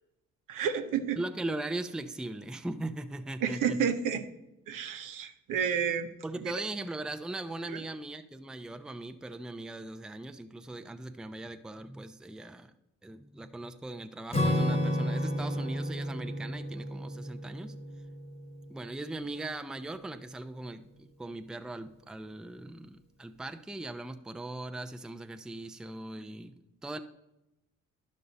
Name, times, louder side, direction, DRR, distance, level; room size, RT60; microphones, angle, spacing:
voice 1, 0.5-1.2 3.4-4.3 4.7-6.1 6.4-6.5 7.7-7.8, right 7 dB, 70° right, 8 dB, 0.9 m, -30 dB
voice 2, 1.2-3.9 6.2-12.7 13.0-17.7 18.7-26.5 26.8-27.0, right 2 dB, ahead, 8 dB, 0.5 m, -39 dB
Acoustic guitar / Strum, 14.3-19.1, equal, 15° left, 1.3 m, -32 dB
11.5 x 5.4 x 4.0 m, 0.91 s
hypercardioid pair, 60°, 34 cm